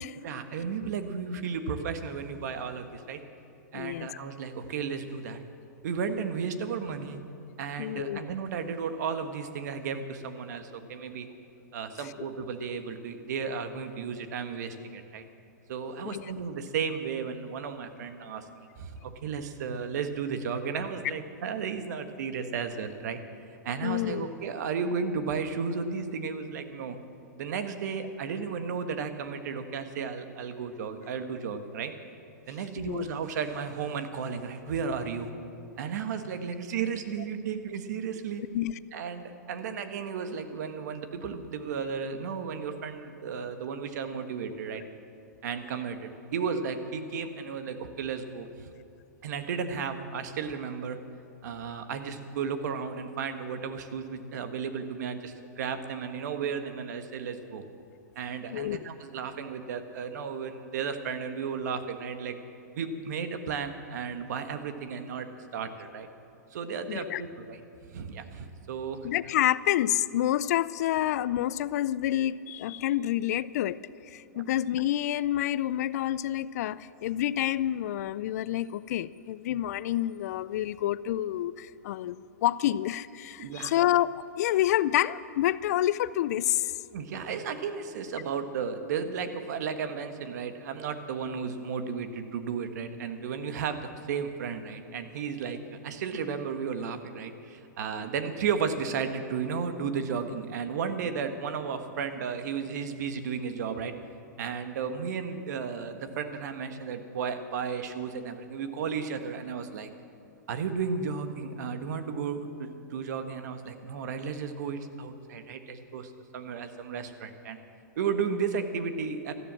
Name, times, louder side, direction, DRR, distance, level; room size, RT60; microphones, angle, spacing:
voice 1, 0.2-3.2 3.7-5.4 5.8-7.2 7.6-11.3 11.7-15.2 15.7-23.2 23.6-27.0 27.4-31.9 32.5-35.3 35.8-38.4 38.9-44.8 45.4-48.7 49.2-51.0 51.4-57.6 58.1-62.4 62.7-65.3 65.5-66.1 66.5-67.6 67.9-69.1 74.3-74.4 83.4-83.7 86.9-95.6 95.8-104.0 104.4-109.9 110.5-117.6 118.0-119.3, right 6 dB, 65° right, 8 dB, 1.4 m, -34 dB
voice 2, 3.7-4.1 7.8-8.3 16.0-16.3 23.8-24.3 32.8-33.1 38.5-38.7 58.5-58.9 66.9-67.2 69.0-73.8 74.0-86.7, left 13 dB, 60° left, 18 dB, 0.4 m, -28 dB
13.5 x 12.0 x 7.6 m, 2.7 s
hypercardioid pair, 125°, 10 cm